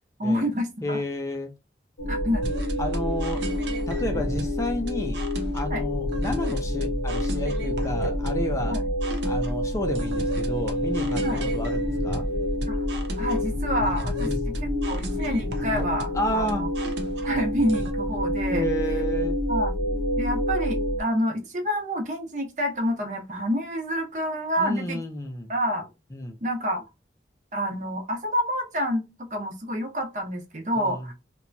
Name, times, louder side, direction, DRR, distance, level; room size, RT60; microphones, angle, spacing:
voice 1, 0.2-1.0 2.1-2.5 4.1-4.3 5.7-5.8 8.6-8.9 11.2-11.4 12.7-12.8 13.2-14.3 14.6-16.7 17.2-18.7 19.5-19.7 20.2-25.0 25.5-25.9 26.4-26.8 27.5-31.1, equal, 45° right, 0.7 m, -28 dB
voice 2, 0.8-1.5 2.8-3.4 3.9-5.2 5.5-8.8 9.2-12.3 14.2-14.4 16.1-16.7 18.5-19.4 24.6-25.5 26.1-26.4 30.8-31.1, left 1 dB, 15° left, 0.4 m, -31 dB
sound 1, 2.0-21.0, left 1 dB, 70° left, 0.6 m, -27 dB
sound 2, 2.4-17.9, right 1 dB, 90° right, 0.7 m, -38 dB
2.9 x 2.2 x 2.5 m
head